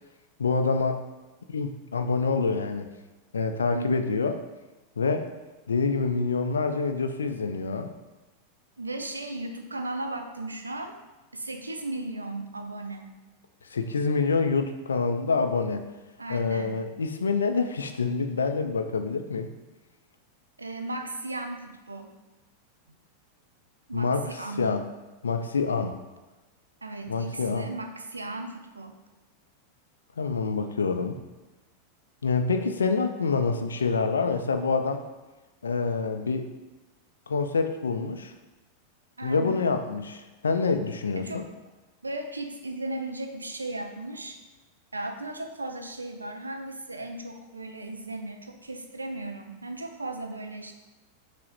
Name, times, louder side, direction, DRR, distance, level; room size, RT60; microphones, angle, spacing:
voice 1, 0.4-1.0 1.5-2.9 3.3-4.4 5.0-5.3 5.7-7.9 13.7-15.8 16.3-19.5 23.9-24.2 24.6-24.8 25.2-25.9 27.1-27.7 30.2-31.2 32.2-35.0 35.6-36.5 37.3-38.3 39.2-41.4, left 4 dB, 70° left, 6 dB, 0.4 m, -26 dB
voice 2, 3.7-4.1 8.8-11.0 11.3-13.2 16.2-16.9 20.6-22.1 22.9-23.0 23.9-24.8 26.8-29.0 39.2-39.7 41.2-41.5 42.0-44.4 44.9-50.7, right 2 dB, 80° right, 5 dB, 0.5 m, -36 dB
6.1 x 2.1 x 4.2 m, 1.1 s
figure-of-eight pair, 90°, 0 cm